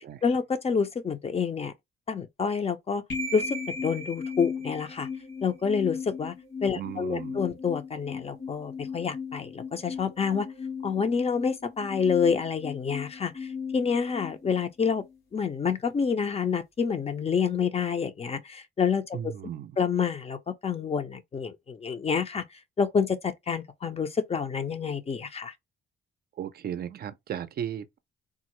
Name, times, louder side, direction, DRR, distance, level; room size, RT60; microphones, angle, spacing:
voice 1, 0.2-1.7 2.1-3.0 3.3-5.1 5.4-6.3 6.6-10.5 10.8-15.0 15.3-19.2 19.8-22.4 22.8-25.5, left 6 dB, 30° left, 0.6 m, -28 dB
sound 1, 3.1-15.2, left 4 dB, 70° left, 1.8 m, -37 dB
voice 2, 6.7-7.5 19.1-19.8 26.4-28.0, right 9 dB, 50° right, 0.4 m, -36 dB
3.6 x 2.0 x 3.0 m
cardioid pair, 90°, 20 cm